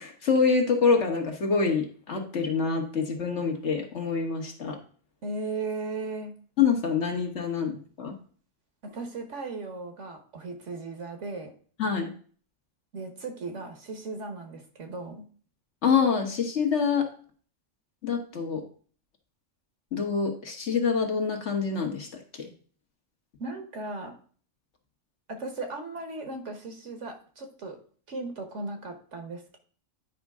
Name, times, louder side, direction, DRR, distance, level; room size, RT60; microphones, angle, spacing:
voice 1, 0.0-4.8 6.6-8.1 11.8-12.1 15.8-17.0 18.0-18.6 19.9-22.1 22.3-22.5, left 5 dB, 60° left, 3 dB, 1.5 m, -26 dB
voice 2, 5.2-6.3 8.8-11.5 12.9-15.2 23.4-24.2 25.3-27.8 28.1-29.6, right 3 dB, 65° right, 5 dB, 1.5 m, -36 dB
9.4 x 5.2 x 3.6 m, 0.44 s
omnidirectional pair, 1.4 m